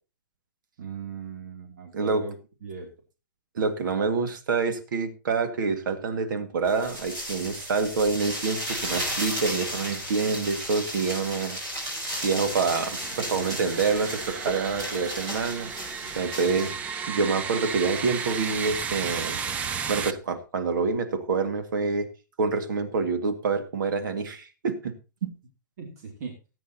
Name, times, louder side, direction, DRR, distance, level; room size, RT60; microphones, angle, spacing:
voice 1, 0.8-2.3 2.6-2.9 13.0-13.7 25.8-26.4, right 6 dB, 50° right, 2 dB, 2.8 m, -39 dB
voice 2, 3.6-11.6 12.2-15.7 16.2-16.7 17.1-19.4 19.9-22.1 22.4-24.9 25.2-25.3, right 4 dB, 70° right, 8 dB, 2.0 m, -27 dB
sound 1, 6.7-16.8, equal, 25° right, 6.7 m, -34 dB
sound 2, 12.1-20.1, right 6 dB, 10° right, 0.5 m, -34 dB
18.5 x 9.2 x 2.9 m, 0.30 s
hypercardioid pair, 165°, 11 cm